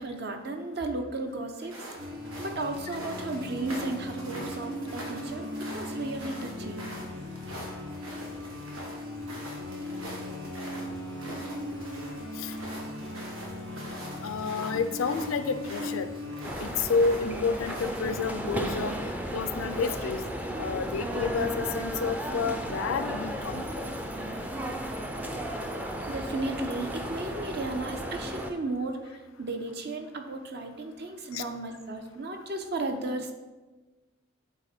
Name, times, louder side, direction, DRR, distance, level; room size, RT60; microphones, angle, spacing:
voice 1, 0.0-1.7 2.4-6.9 26.1-29.0 29.4-33.3, right 2 dB, 50° right, 5 dB, 0.7 m, -34 dB
sound 1, 1.6-18.1, right 1 dB, 90° right, 1.6 m, -44 dB
sound 2, 2.0-16.5, left 1 dB, 70° right, 1.5 m, -38 dB
voice 2, 14.2-16.1 16.6-19.0 19.3-20.2 20.6-23.8 31.3-31.4, left 5 dB, 85° left, 10 dB, 0.4 m, -30 dB
sound 3, 16.4-28.5, equal, 10° right, 0.4 m, -34 dB
8.1 x 3.7 x 4.3 m, 1.2 s
head